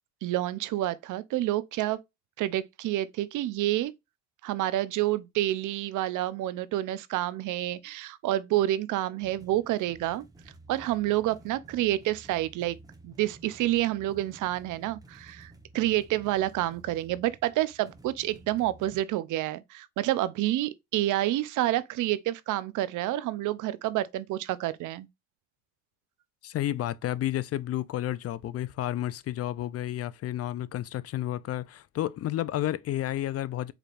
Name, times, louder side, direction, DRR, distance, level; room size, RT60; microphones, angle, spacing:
voice 1, 0.2-2.0 2.4-3.9 4.4-10.2 10.7-12.8 13.0-25.1, right 15 dB, 80° right, 0.5 m, -28 dB
sound 1, 9.2-19.0, right 2 dB, 10° right, 0.9 m, -53 dB
voice 2, 26.4-33.7, left 13 dB, 55° left, 0.4 m, -31 dB
4.8 x 3.2 x 2.4 m
cardioid pair, 90°, 30 cm